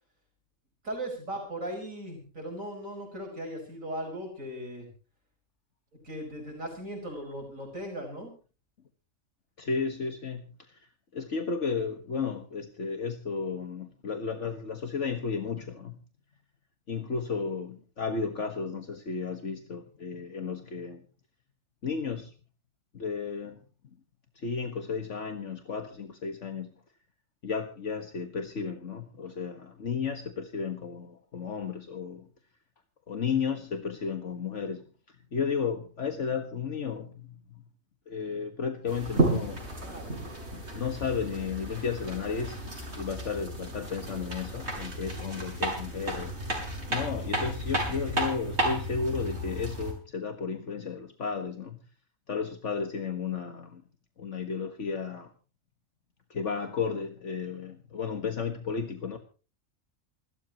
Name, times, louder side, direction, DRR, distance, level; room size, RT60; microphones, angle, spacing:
voice 1, 0.8-4.9 6.0-8.3 39.6-40.4, right 1 dB, 75° right, 1 dB, 5.6 m, -38 dB
voice 2, 9.6-16.0 16.9-21.0 21.8-22.3 22.9-23.6 24.4-26.7 27.4-32.3 33.1-37.6 38.1-39.7 40.5-42.6 43.0-46.4 46.9-51.8 52.3-53.8 54.2-55.3 56.3-59.2, left 5 dB, 60° left, 6 dB, 1.9 m, -33 dB
sound 1, 38.9-49.9, right 1 dB, 55° right, 7.0 m, -33 dB
27.5 x 13.5 x 3.0 m, 0.36 s
omnidirectional pair, 1.4 m